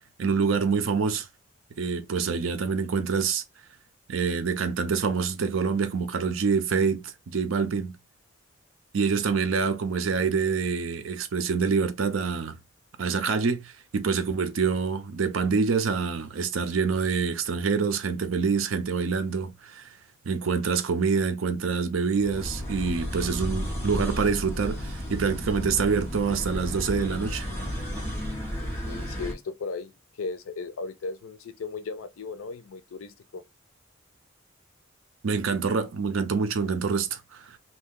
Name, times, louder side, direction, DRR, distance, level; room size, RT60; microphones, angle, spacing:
voice 1, 0.2-1.3 1.8-3.4 4.1-8.0 8.9-12.6 13.0-19.9 20.3-27.5 35.2-37.6, right 5 dB, 75° right, 0.5 m, -26 dB
sound 1, 22.1-29.3, equal, 10° left, 0.8 m, -33 dB
voice 2, 28.8-33.4, left 4 dB, 80° left, 0.4 m, -36 dB
2.7 x 2.3 x 3.5 m
head